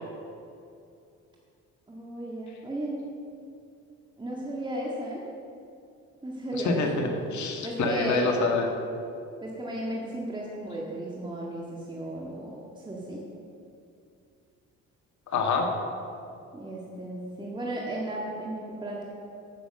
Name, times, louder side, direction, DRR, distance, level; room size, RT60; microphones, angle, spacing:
voice 1, 1.9-3.1 4.2-5.3 6.2-7.1 7.6-8.4 9.4-13.2 16.5-19.0, right 1 dB, 15° right, -4 dB, 1.9 m, -34 dB
voice 2, 6.5-8.7 15.3-15.7, left 3 dB, 70° left, 3 dB, 1.6 m, -26 dB
8.9 x 8.5 x 6.6 m, 2.5 s
cardioid pair, 90°, 30 cm